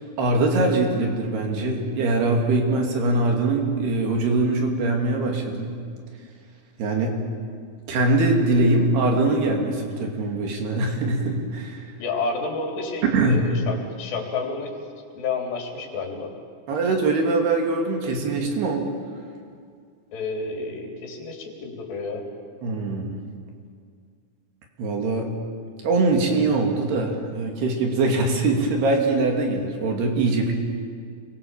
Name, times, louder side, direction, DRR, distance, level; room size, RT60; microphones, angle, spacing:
voice 1, 0.2-5.8 6.8-7.2 7.9-11.9 13.0-13.4 16.7-18.9 22.6-23.1 24.8-25.3 25.8-30.5, right 2 dB, 60° right, 2 dB, 4.5 m, -22 dB
voice 2, 12.0-14.7 15.2-16.3 20.1-22.2, left 4 dB, 65° left, 0 dB, 5.5 m, -30 dB
29.0 x 23.0 x 7.2 m, 2.1 s
omnidirectional pair, 5.4 m